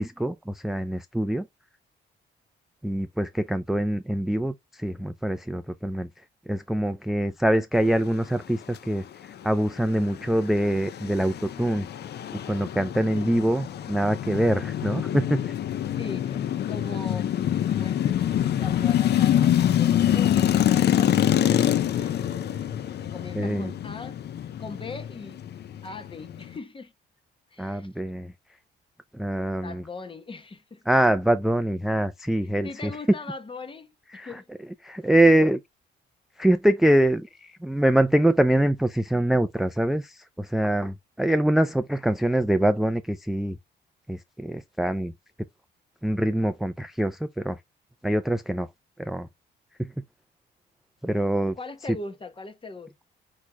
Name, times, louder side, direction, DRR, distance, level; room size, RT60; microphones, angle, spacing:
voice 1, 0.0-1.5 2.8-6.1 6.5-11.9 12.5-15.6 23.3-23.7 27.6-28.3 29.1-29.8 30.9-32.9 34.1-34.4 34.8-35.6 36.4-43.6 44.1-45.1 46.0-47.6 48.0-48.7 49.0-49.3 49.8-49.9 51.0-51.5, right 1 dB, ahead, 0.4 m, -24 dB
sound 1, 9.8-26.6, left 11 dB, 55° left, 0.5 m, -25 dB
voice 2, 13.1-13.9 16.0-17.3 17.6-22.2 23.0-24.2 24.6-25.4 25.8-26.9 27.5-27.9 29.5-30.8 32.6-34.5 51.5-53.0, left 3 dB, 25° left, 1.0 m, -40 dB
4.8 x 4.3 x 2.2 m
cardioid pair, 90°, 20 cm